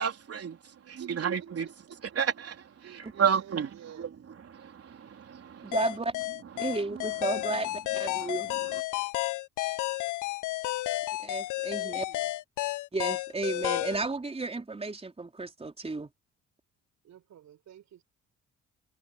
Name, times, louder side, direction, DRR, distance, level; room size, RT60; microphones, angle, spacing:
voice 1, 0.0-0.6 0.9-1.7 2.2-3.7 3.9-4.1 4.4-5.7 6.7-6.8 7.3-7.4 8.2-8.8, right 7 dB, 50° right, 3.8 m, -32 dB
voice 2, 0.7-2.2 2.8-4.1 11.7-12.3 17.0-18.0, right 10 dB, 70° right, 6.5 m, -50 dB
voice 3, 5.6-6.1 6.6-7.7 7.9-8.5 11.2-12.0 12.9-16.1, right 3 dB, 20° right, 4.0 m, -33 dB
sound 1, 5.7-14.0, left 18 dB, 80° left, 0.6 m, -32 dB
cardioid pair, 90°, 30 cm